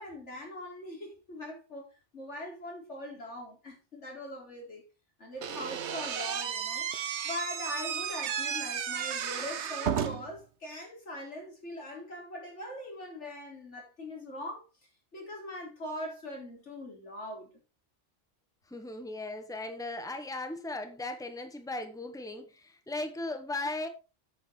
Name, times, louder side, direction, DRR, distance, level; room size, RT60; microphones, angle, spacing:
voice 1, 0.0-4.8 5.2-6.9 7.2-14.6 15.1-17.5, left 1 dB, 90° left, 4.2 m, -41 dB
Slam / Squeak, 5.4-10.4, right 8 dB, 75° right, 1.1 m, -33 dB
voice 2, 18.7-23.9, left 2 dB, 5° left, 1.3 m, -37 dB
8.7 x 7.2 x 4.5 m
omnidirectional pair, 1.2 m